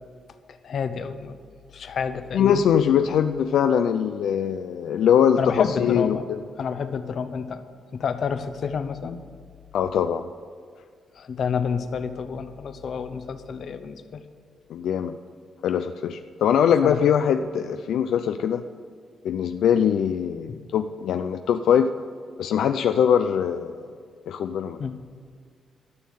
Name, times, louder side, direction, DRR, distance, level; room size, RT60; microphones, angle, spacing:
voice 1, 0.6-1.4 1.7-2.6 5.4-6.2 6.6-7.6 7.9-9.2 11.2-14.3 16.8-17.1 20.5-20.6 24.8-25.0, left 6 dB, 60° left, 10 dB, 0.8 m, -29 dB
voice 2, 2.3-6.4 9.7-10.3 14.7-15.2 15.6-18.6 19.2-21.9 22.4-23.9 24.3-24.8, left 8 dB, 85° left, 8 dB, 0.4 m, -22 dB
12.5 x 6.6 x 9.3 m, 2.1 s
cardioid pair, 110°, 0 cm